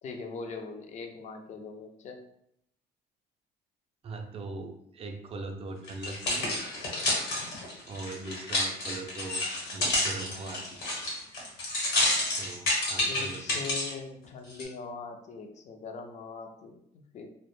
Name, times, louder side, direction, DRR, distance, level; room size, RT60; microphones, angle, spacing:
voice 1, 0.0-2.2 13.0-17.3, left 4 dB, 45° left, 5 dB, 0.4 m, -41 dB
voice 2, 4.0-6.6 7.8-9.4 9.7-10.9 12.4-13.6, right 3 dB, 35° right, 4 dB, 0.3 m, -40 dB
sound 1, 5.9-13.9 14.5-14.6, left 1 dB, 70° left, 1.0 m, -29 dB
2.1 x 2.0 x 3.0 m, 0.75 s
cardioid pair, 110°, 17 cm